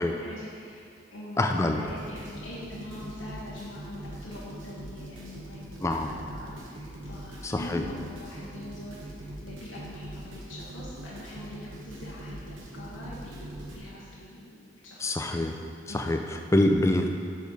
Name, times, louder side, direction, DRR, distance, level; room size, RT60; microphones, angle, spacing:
voice 1, 0.0-9.1 9.4-15.4 15.9-16.0, left 1 dB, 85° left, -6 dB, 1.1 m, -43 dB
voice 2, 1.4-1.8 5.8-6.1 7.4-7.8 15.0-15.5 15.9-17.2, left 1 dB, 15° left, 4 dB, 0.3 m, -25 dB
sound 1, 1.8-13.8, right 1 dB, 85° right, 1.2 m, -42 dB
6.7 x 5.0 x 4.7 m, 2.4 s
head